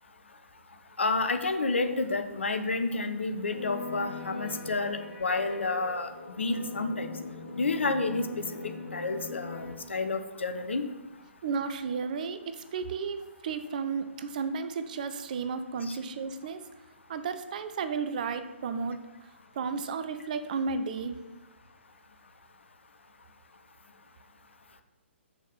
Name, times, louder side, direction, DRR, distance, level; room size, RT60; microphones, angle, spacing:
voice 1, 1.0-7.1 7.5-10.8 15.9-16.0, left 3 dB, 65° left, 8 dB, 0.8 m, -30 dB
sound 1, 3.5-9.7, left 2 dB, 45° left, 2.3 m, -41 dB
voice 2, 11.4-16.6 17.1-21.2, right 5 dB, 40° right, 10 dB, 0.6 m, -33 dB
6.6 x 6.3 x 5.4 m, 1.1 s
figure-of-eight pair, 130°, 7 cm